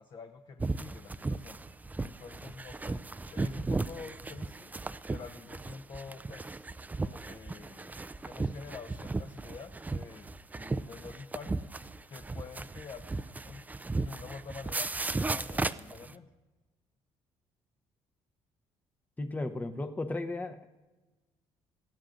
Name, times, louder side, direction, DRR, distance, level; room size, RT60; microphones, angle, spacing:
voice 1, 0.0-1.6 2.0-3.0 3.3-4.7 5.1-6.6 7.0-11.7 12.1-13.6 14.0-14.9 15.2-16.3, left 5 dB, 45° left, 6 dB, 0.8 m, -47 dB
sound 1, 0.6-16.1, right 3 dB, 15° right, 0.4 m, -35 dB
voice 2, 19.2-20.7, left 2 dB, 15° left, 7 dB, 0.8 m, -35 dB
21.0 x 15.0 x 2.6 m, 1.2 s
supercardioid pair, 85°, 11 cm